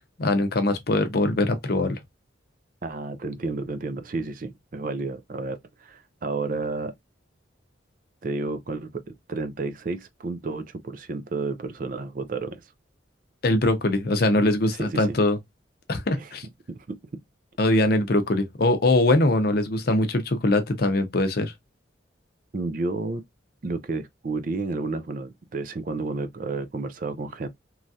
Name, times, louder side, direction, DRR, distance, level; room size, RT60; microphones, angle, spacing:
voice 1, 0.2-2.0 13.4-15.4 15.9-16.5 17.6-21.5, left 2 dB, 50° left, 0.6 m, -22 dB
voice 2, 2.8-6.9 8.2-9.0 9.3-12.6 14.8-15.2 16.2-16.3 16.7-17.0 22.5-23.2 23.6-27.5, right 3 dB, 45° right, 0.4 m, -31 dB
3.1 x 2.3 x 2.6 m
head